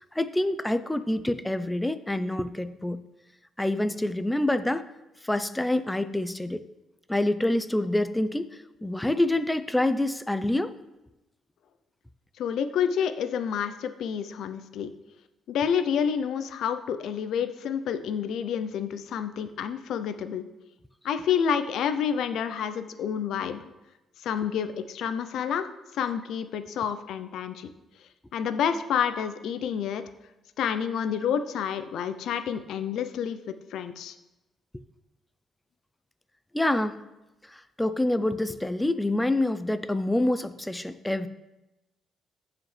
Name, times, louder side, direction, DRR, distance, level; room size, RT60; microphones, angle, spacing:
voice 1, 0.0-3.0 3.6-4.9 5.2-6.6 7.1-10.8 36.5-37.0 37.5-41.3, left 1 dB, 10° left, 12 dB, 0.5 m, -27 dB
voice 2, 12.4-14.9 15.5-20.4 21.0-23.7 24.2-25.7 25.9-27.7 28.3-30.0 30.6-34.1, left 8 dB, 75° left, 10 dB, 0.6 m, -29 dB
15.0 x 4.9 x 3.3 m, 0.99 s
cardioid pair, 90°, 0 cm